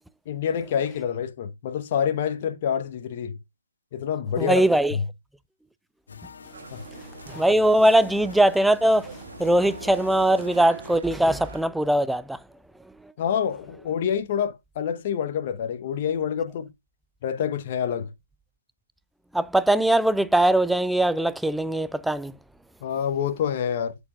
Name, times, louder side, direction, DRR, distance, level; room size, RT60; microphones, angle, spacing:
voice 1, 0.3-3.3 3.9-4.6 4.9-5.0 6.7-6.8 13.2-16.7 17.2-18.1 22.8-24.0, left 8 dB, 35° left, 0.9 m, -27 dB
voice 2, 4.4-5.0 7.3-9.1 9.4-12.4 19.3-22.3, right 1 dB, ahead, 0.3 m, -21 dB
sound 1, 6.1-11.3, left 5 dB, 60° left, 1.6 m, -46 dB
sound 2, 6.5-11.6, right 4 dB, 55° right, 1.5 m, -42 dB
8.3 x 7.0 x 2.3 m
figure-of-eight pair, 145°, 0 cm